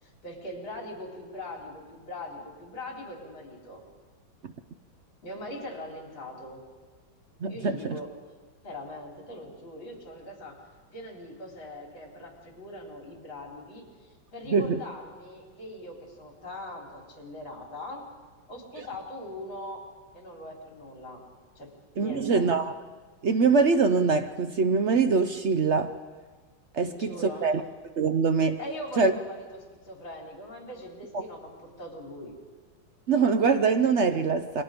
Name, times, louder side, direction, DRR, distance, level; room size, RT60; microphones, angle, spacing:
voice 1, 0.0-3.8 5.2-6.6 7.5-8.1 8.6-10.6 10.9-18.1 18.5-19.8 20.1-21.2 21.6-22.4 26.8-27.5 28.6-32.4, left 1 dB, 70° left, 0 dB, 4.7 m, -41 dB
voice 2, 7.4-8.0 14.5-14.8 22.0-22.7 23.2-25.9 26.7-27.1 27.4-27.6 28.0-28.6 29.0-29.1 33.1-34.6, right 5 dB, 75° right, 8 dB, 0.6 m, -23 dB
28.5 x 23.5 x 5.2 m, 1.4 s
omnidirectional pair, 2.3 m